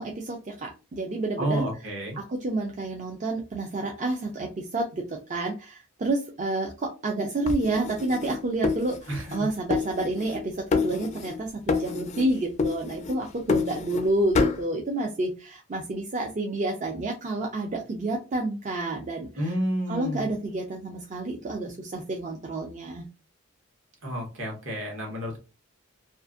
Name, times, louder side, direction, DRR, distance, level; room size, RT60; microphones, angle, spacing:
voice 1, 0.0-1.7 2.2-19.5 19.9-23.0, right 2 dB, 35° right, 0 dB, 0.4 m, -29 dB
voice 2, 1.4-2.2 9.1-9.5 19.3-20.3 24.0-25.4, equal, 65° right, 0 dB, 1.1 m, -30 dB
sound 1, 7.5-9.4 9.7-10.4 10.7-11.4 11.7-12.3 12.6-14.1 14.3-14.6, left 4 dB, 35° left, 0.3 m, -27 dB
2.5 x 2.4 x 2.4 m, 0.30 s
head